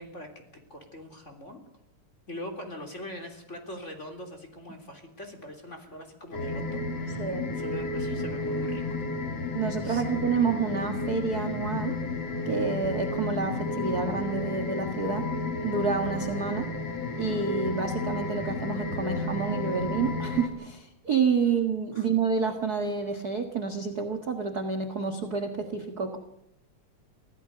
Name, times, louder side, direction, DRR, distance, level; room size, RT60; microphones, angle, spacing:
voice 1, 0.0-1.6 2.3-7.3 7.5-9.0 9.8-10.2 21.9-22.1, left 1 dB, 20° left, 4 dB, 3.3 m, -42 dB
sound 1, 6.3-20.5, left 3 dB, 50° left, 3.2 m, -32 dB
voice 2, 9.5-12.0 12.4-15.3 15.6-16.7 17.2-26.2, right 5 dB, 35° right, 5 dB, 1.7 m, -29 dB
25.5 x 16.5 x 6.7 m, 0.82 s
omnidirectional pair, 3.9 m